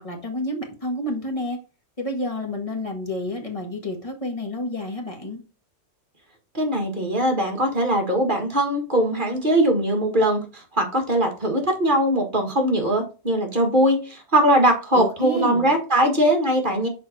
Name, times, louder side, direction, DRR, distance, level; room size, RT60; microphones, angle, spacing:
voice 1, 0.0-1.6 2.0-5.4 14.9-15.7, left 1 dB, 25° left, 1 dB, 1.9 m, -29 dB
voice 2, 6.5-16.9, right 1 dB, 40° right, 3 dB, 1.8 m, -21 dB
6.5 x 4.7 x 4.3 m, 0.34 s
omnidirectional pair, 1.3 m